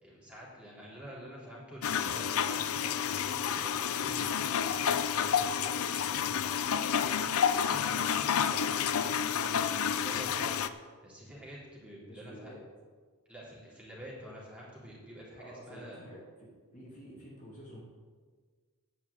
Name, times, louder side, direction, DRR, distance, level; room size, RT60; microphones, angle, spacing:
voice 1, 0.0-6.8 7.4-12.5 13.3-16.0, equal, 5° right, -7 dB, 3.6 m, -48 dB
sound 1, 1.8-10.7, left 8 dB, 70° left, 0.5 m, -30 dB
voice 2, 12.1-12.6 15.3-17.8, equal, 35° left, -5 dB, 2.5 m, -49 dB
9.9 x 5.9 x 8.3 m, 1.5 s
head